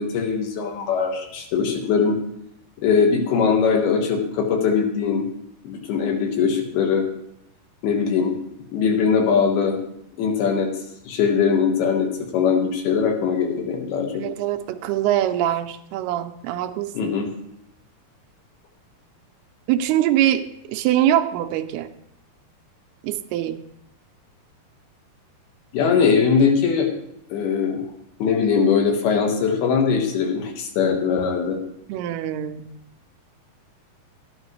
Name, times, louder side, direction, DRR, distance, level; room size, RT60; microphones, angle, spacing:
voice 1, 0.0-2.2 2.8-5.3 5.6-7.1 7.8-8.4 8.7-9.8 10.2-10.7 11.1-12.1 12.3-14.2 16.9-17.3 25.7-26.9 27.3-27.9 28.2-31.6, left 6 dB, 80° left, 2 dB, 3.4 m, -21 dB
voice 2, 14.1-17.1 19.7-21.9 23.0-23.6 31.9-32.7, right 12 dB, 90° right, 7 dB, 2.6 m, -23 dB
13.0 x 11.5 x 3.1 m, 0.80 s
omnidirectional pair, 4.5 m